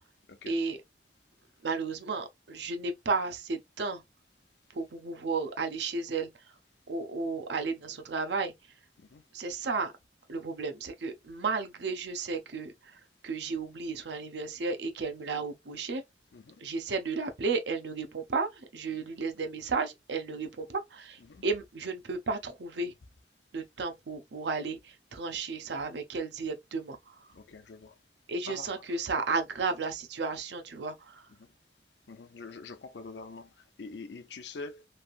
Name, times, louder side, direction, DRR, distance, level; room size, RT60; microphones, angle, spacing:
voice 1, 0.5-0.8 1.6-4.0 4.7-6.3 6.9-8.5 9.3-9.9 10.3-16.0 16.6-22.9 23.5-27.3 28.3-31.3, right 4 dB, 75° right, 0.6 m, -33 dB
voice 2, 16.3-16.6 18.9-19.1 21.2-21.4 27.3-27.9 28.5-28.8 31.4-31.5 32.1-34.9, left 3 dB, 75° left, 0.5 m, -45 dB
3.2 x 2.6 x 2.4 m
head